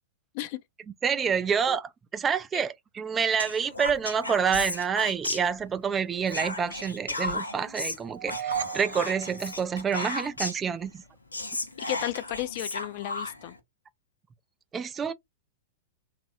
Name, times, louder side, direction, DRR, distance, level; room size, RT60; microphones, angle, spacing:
voice 1, 1.0-11.0 14.7-15.1, right 7 dB, 20° right, 0.3 m, -28 dB
Whispering, 3.4-5.9 6.3-10.7 11.0-11.1 11.3-13.6, left 2 dB, 85° left, 0.7 m, -34 dB
sound 1, 8.0-10.3, right 9 dB, 70° right, 0.6 m, -36 dB
voice 2, 11.9-13.5, left 15 dB, 50° left, 0.4 m, -33 dB
3.0 x 2.4 x 2.5 m
figure-of-eight pair, 100°, 0 cm